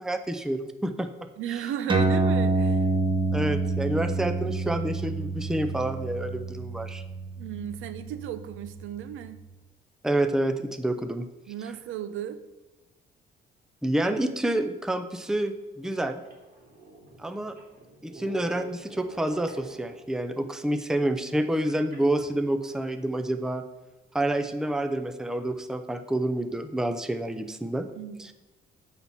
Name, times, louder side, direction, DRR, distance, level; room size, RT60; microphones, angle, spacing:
voice 1, 0.0-1.3 3.3-7.0 10.0-11.3 13.8-16.2 17.2-17.6 18.0-23.6 24.1-27.9 28.2-28.3, right 1 dB, 5° right, 9 dB, 0.6 m, -28 dB
voice 2, 1.4-2.9 7.4-9.4 11.5-12.4 27.9-28.3, right 10 dB, 85° right, 12 dB, 0.7 m, -35 dB
sound 1, 1.9-8.8, right 3 dB, 25° right, 1.3 m, -27 dB
sound 2, 15.2-15.3 15.9-16.0 16.2-20.2 21.9-23.0, right 1 dB, 45° right, 2.9 m, -47 dB
8.8 x 4.2 x 7.1 m, 1.1 s
cardioid pair, 90°, 20 cm